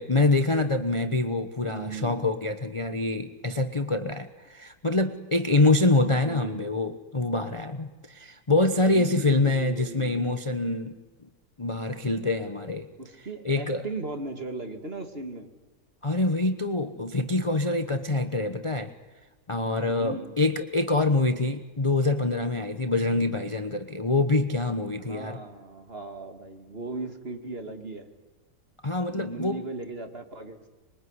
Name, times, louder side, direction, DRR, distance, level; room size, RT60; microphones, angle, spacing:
voice 1, 0.0-10.9 11.6-12.9 13.4-13.8 16.0-18.9 19.5-25.4 28.8-29.6, left 2 dB, 20° left, 8 dB, 0.9 m, -25 dB
voice 2, 1.6-2.2 6.2-6.8 8.8-10.2 13.0-15.5 19.8-20.3 25.0-28.1 29.1-30.7, right 2 dB, 35° right, 6 dB, 2.5 m, -37 dB
25.5 x 22.5 x 9.7 m, 1.3 s
omnidirectional pair, 1.8 m